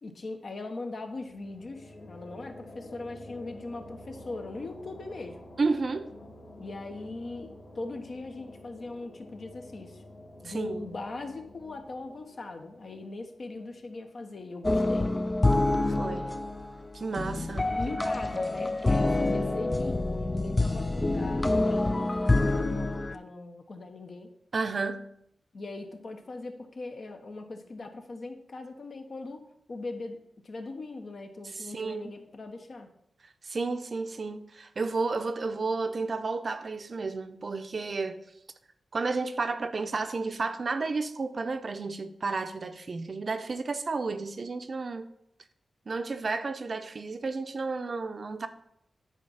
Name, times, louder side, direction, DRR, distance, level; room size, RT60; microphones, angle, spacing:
voice 1, 0.0-5.4 6.6-10.0 10.4-15.1 17.7-24.3 25.5-29.4 29.7-30.2 30.4-32.9, left 2 dB, 55° left, 1.1 m, -40 dB
sound 1, 1.1-14.5, left 1 dB, 80° left, 2.4 m, -50 dB
voice 2, 5.6-6.1 10.4-10.8 15.8-16.3 16.9-18.1 24.5-25.0 31.5-32.0 33.4-38.2 38.9-45.1 45.9-48.5, right 3 dB, 50° right, 0.6 m, -32 dB
sound 2, 14.6-23.2, left 2 dB, 20° left, 0.5 m, -27 dB
10.0 x 4.4 x 5.5 m
cardioid pair, 75°, 0 cm